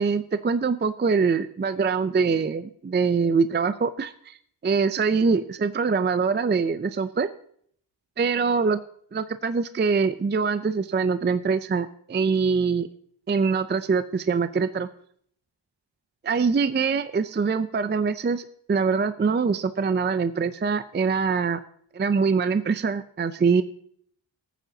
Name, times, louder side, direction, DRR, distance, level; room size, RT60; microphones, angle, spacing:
voice 1, 0.0-4.4 4.6-7.3 8.2-8.8 9.1-12.9 13.3-14.9 16.2-21.6 21.9-23.6, right 5 dB, 25° right, 12 dB, 0.4 m, -24 dB
20.0 x 9.1 x 2.7 m, 0.62 s
wide cardioid pair, 145°, 46 cm